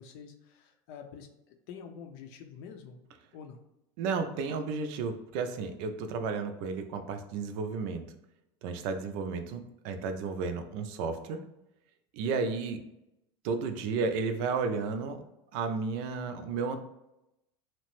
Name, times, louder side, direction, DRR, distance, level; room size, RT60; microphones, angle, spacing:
voice 1, 0.0-3.0 3.3-3.6, left 6 dB, 70° left, 6 dB, 0.5 m, -47 dB
voice 2, 4.0-8.1 8.6-11.4 12.1-12.8 13.4-15.2 15.5-16.8, right 4 dB, 70° right, 7 dB, 0.4 m, -33 dB
2.8 x 2.1 x 3.0 m, 0.88 s
supercardioid pair, 105°, 13 cm